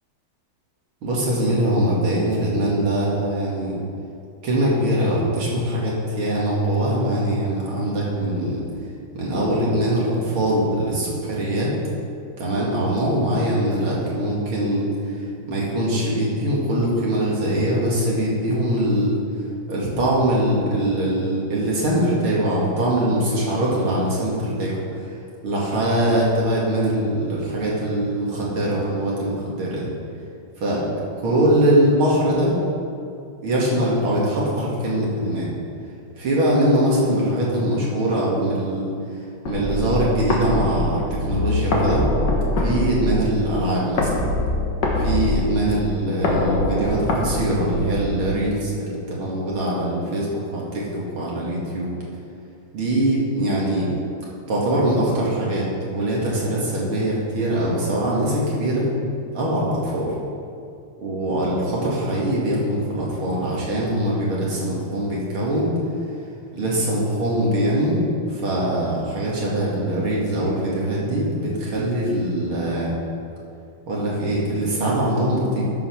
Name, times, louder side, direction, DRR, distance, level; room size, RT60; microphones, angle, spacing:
voice 1, 1.0-3.7 4.4-8.6 9.1-11.7 12.4-14.9 15.5-19.2 19.7-24.7 25.4-29.9 30.6-30.8 31.2-32.6 33.4-35.5 36.2-38.9 39.4-42.1 42.6-44.2 45.0-51.9 52.7-53.9 54.5-58.9 59.3-60.1 61.0-65.8 66.5-68.0 68.3-72.9 73.9-75.7, right 1 dB, 80° right, -5 dB, 3.0 m, -22 dB
sound 1, 39.5-48.4, left 2 dB, 60° left, 1.8 m, -24 dB
12.5 x 5.2 x 5.9 m, 2.4 s
omnidirectional pair, 2.3 m